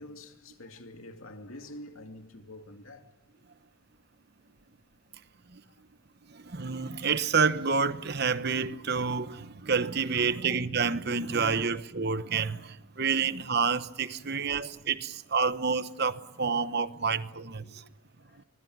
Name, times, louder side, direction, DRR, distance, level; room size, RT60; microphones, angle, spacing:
voice 1, 0.0-3.1 10.1-10.5 11.5-11.7 13.2-13.3 14.2-14.8 17.6-17.9 18.2-18.4, left 1 dB, 75° left, 2.5 m, -48 dB
voice 2, 6.3-17.8, right 5 dB, 50° right, 1.0 m, -29 dB
24.0 x 21.0 x 9.3 m
head